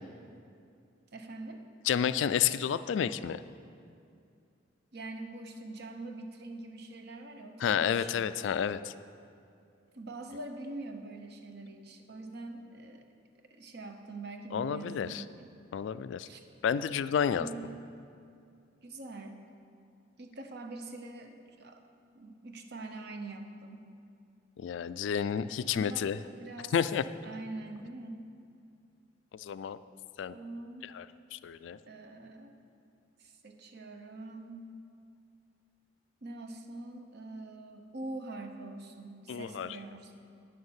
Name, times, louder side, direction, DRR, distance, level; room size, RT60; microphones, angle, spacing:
voice 1, 1.1-1.6 4.9-8.3 9.9-13.1 13.5-15.5 16.2-16.4 17.4-18.0 18.8-19.4 20.2-21.8 22.1-23.9 25.7-26.7 27.2-28.3 30.3-30.9 31.9-32.5 33.2-34.7 36.2-40.1, right 2 dB, 55° right, 5 dB, 0.8 m, -44 dB
voice 2, 1.8-3.4 7.6-8.9 14.5-15.2 15.7-16.3 16.6-17.5 24.6-26.2 26.7-27.0 29.3-29.8 30.2-30.4 30.8-31.1 31.3-31.8 39.3-39.8, left 8 dB, 70° left, 14 dB, 0.3 m, -30 dB
9.6 x 6.4 x 7.2 m, 2.4 s
head